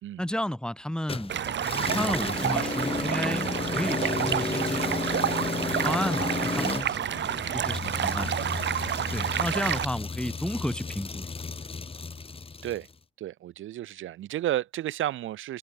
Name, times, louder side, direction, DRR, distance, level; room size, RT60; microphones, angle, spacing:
voice 1, 0.2-1.4 1.9-5.1 5.8-8.3 9.1-11.3, equal, 5° left, 6.1 m, -32 dB
sound 1, 1.1-12.9, left 4 dB, 30° left, 3.8 m, -33 dB
Stream, 1.3-9.8, right 10 dB, 65° right, 7.1 m, -29 dB
voice 2, 13.2-15.6, right 13 dB, 80° right, 4.7 m, -32 dB
cardioid pair, 90°, 20 cm